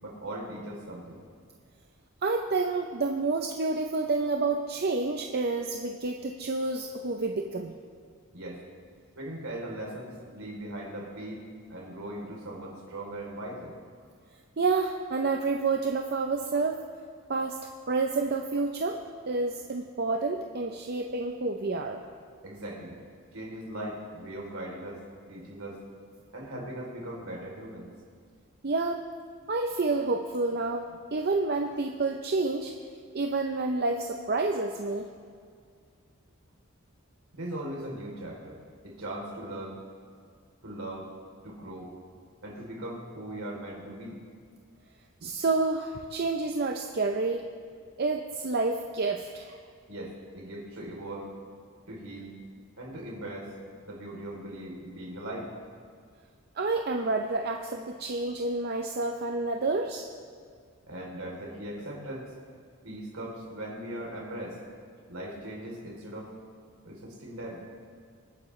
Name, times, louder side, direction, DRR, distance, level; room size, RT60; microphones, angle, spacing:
voice 1, 0.0-1.2 8.3-8.6 9.1-13.8 22.4-23.0 23.3-25.0 25.3-25.8 26.3-27.9 37.3-38.6 38.8-39.8 40.6-41.1 41.4-41.9 42.4-44.2 49.9-51.3 51.9-52.4 52.8-53.5 53.9-55.5 60.9-62.3 62.8-64.6 65.1-66.3 66.8-67.6, right 1 dB, 70° right, -2 dB, 3.3 m, -39 dB
voice 2, 2.2-7.8 14.6-16.8 17.3-17.6 17.9-22.0 28.6-29.1 29.5-32.7 33.1-35.1 45.2-47.5 48.0-49.6 56.6-60.1, right 3 dB, 45° right, 3 dB, 0.6 m, -29 dB
25.0 x 9.5 x 3.2 m, 2.1 s
head